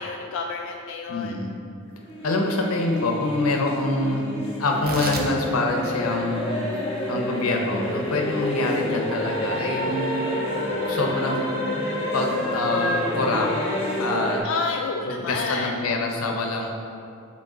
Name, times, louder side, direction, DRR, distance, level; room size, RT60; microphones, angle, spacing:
voice 1, 0.0-1.4 14.4-15.9, left 4 dB, 60° left, 2 dB, 0.3 m, -30 dB
voice 2, 1.1-1.6 2.2-4.3 4.6-6.7 7.1-10.3 10.9-11.5 12.1-13.5 14.0-14.4 15.1-16.7, left 2 dB, 85° left, 2 dB, 0.8 m, -25 dB
sound 1, 2.0-14.4, left 1 dB, 25° left, 1.2 m, -28 dB
Tearing, 4.7-11.4, right 3 dB, 45° right, 0.6 m, -40 dB
7.6 x 3.6 x 3.8 m, 2.5 s
head